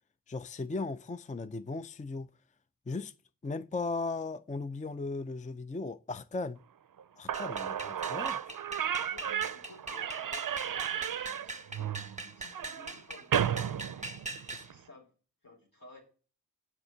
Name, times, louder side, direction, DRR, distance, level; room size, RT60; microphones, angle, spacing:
voice 1, 0.3-2.3 2.9-3.1 3.4-6.6 7.2-8.5 14.5-14.7, left 3 dB, 20° left, 0.4 m, -37 dB
Slam / Squeak, 7.0-7.1 7.3-14.8, right 9 dB, 70° right, 0.5 m, -34 dB
sound 1, 7.3-14.7, right 3 dB, 20° right, 0.9 m, -42 dB
voice 2, 7.8-8.1 8.7-14.2 14.6-15.1 15.4-16.0, left 3 dB, 75° left, 4.5 m, -55 dB
8.1 x 6.0 x 7.2 m
wide cardioid pair, 60°, 34 cm